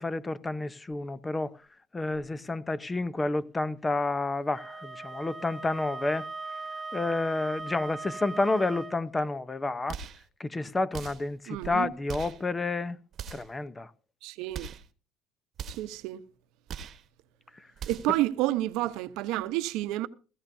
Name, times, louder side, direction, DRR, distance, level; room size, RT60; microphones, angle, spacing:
voice 1, 0.0-1.6 1.9-6.3 6.9-10.0 10.4-13.0 13.3-13.9 17.5-17.7, left 2 dB, 15° left, 0.8 m, -30 dB
Wind instrument woodwind instrument, 4.5-9.0, right 3 dB, 20° right, 1.5 m, -39 dB
sound 1, 9.9-10.3 10.9-11.3 12.1-12.4 13.1-13.6 14.5-14.9 15.6-16.0 16.7-17.1 17.8-18.2, right 7 dB, 50° right, 1.2 m, -40 dB
voice 2, 11.5-11.9 14.2-14.7 15.8-16.2 17.9-20.1, right 16 dB, 80° right, 0.9 m, -29 dB
17.5 x 15.0 x 2.7 m
cardioid pair, 110°, 0 cm